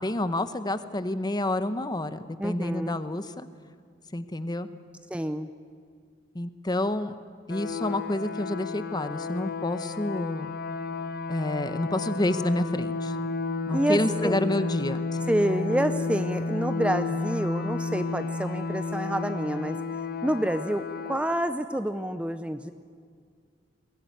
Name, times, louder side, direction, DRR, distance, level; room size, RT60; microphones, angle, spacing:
voice 1, 0.0-3.5 4.1-4.7 6.3-7.1 7.5-10.5 11.3-13.2 13.7-15.0, left 1 dB, 25° left, 12 dB, 0.9 m, -29 dB
voice 2, 2.4-3.0 5.1-5.5 13.7-14.4 15.3-19.8 20.2-22.7, right 1 dB, 5° right, 10 dB, 0.6 m, -28 dB
sound 1, 7.5-21.2, left 3 dB, 55° left, 0.8 m, -32 dB
21.5 x 17.0 x 9.4 m, 2.1 s
head